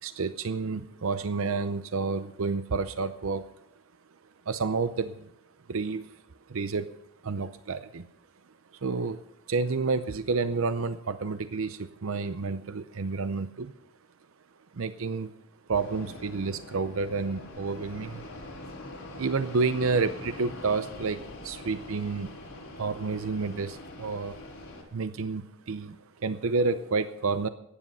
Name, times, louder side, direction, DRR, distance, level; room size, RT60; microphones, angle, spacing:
voice 1, 0.0-3.4 4.5-5.3 5.7-6.1 6.5-6.9 7.2-8.1 8.8-9.2 9.5-13.7 14.7-15.3 15.7-18.3 19.2-22.3 22.8-24.4 24.9-27.5, right 4 dB, 75° right, 12 dB, 0.6 m, -30 dB
Fixed-wing aircraft airplane, 15.7-24.8, left 2 dB, 80° left, 4.1 m, -43 dB
15.0 x 9.9 x 5.5 m, 0.80 s
head